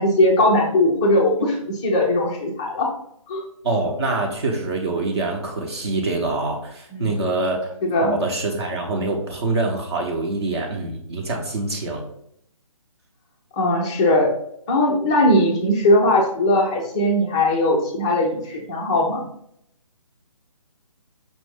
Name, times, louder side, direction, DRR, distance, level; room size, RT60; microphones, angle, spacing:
voice 1, 0.0-2.9 3.3-3.4 6.9-7.2 7.8-8.2 13.6-14.3 14.7-19.3, left 1 dB, 10° left, -1 dB, 0.3 m, -19 dB
voice 2, 3.6-7.7 8.0-12.0, right 2 dB, 45° right, 0 dB, 0.8 m, -25 dB
5.3 x 2.5 x 3.6 m, 0.72 s
figure-of-eight pair, 145°, 18 cm